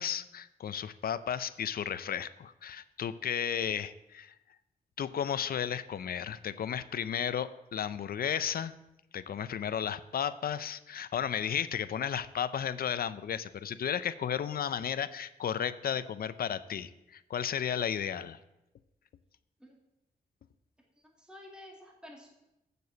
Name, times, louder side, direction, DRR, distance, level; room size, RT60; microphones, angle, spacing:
voice 1, 0.0-4.3 5.0-8.7 9.1-18.4, left 8 dB, 70° left, 14 dB, 0.5 m, -34 dB
voice 2, 21.0-22.3, left 1 dB, 5° right, -1 dB, 1.8 m, -51 dB
6.8 x 6.8 x 7.7 m, 0.92 s
wide cardioid pair, 105°, 16 cm